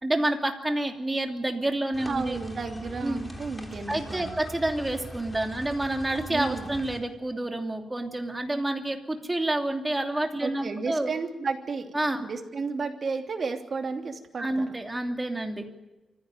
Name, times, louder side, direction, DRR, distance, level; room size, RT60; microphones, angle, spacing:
voice 1, 0.0-2.4 3.0-3.2 3.9-11.1 11.9-12.2 14.4-15.7, right 1 dB, 15° right, 4 dB, 2.9 m, -28 dB
sound 1, 1.9-7.0, left 1 dB, 15° left, 3.5 m, -41 dB
voice 2, 2.0-4.4 6.3-6.7 10.4-11.9 12.2-14.7, right 4 dB, 50° right, 4 dB, 2.9 m, -33 dB
24.5 x 15.5 x 9.2 m, 1.1 s
cardioid pair, 100°, 0 cm